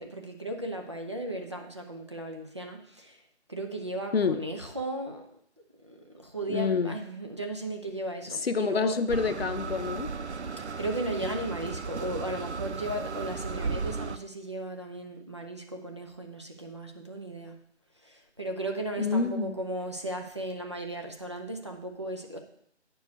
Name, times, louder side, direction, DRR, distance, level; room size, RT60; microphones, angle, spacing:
voice 1, 0.0-3.2 3.5-5.3 5.8-9.0 10.6-17.6 18.0-22.4, right 1 dB, 25° right, 3 dB, 0.6 m, -36 dB
voice 2, 6.5-7.0 8.4-10.1 19.0-19.5, left 5 dB, 60° left, 10 dB, 0.8 m, -27 dB
sound 1, 9.1-14.2, right 4 dB, 75° right, 0.7 m, -35 dB
9.4 x 4.6 x 6.4 m, 0.68 s
figure-of-eight pair, 165°, 35 cm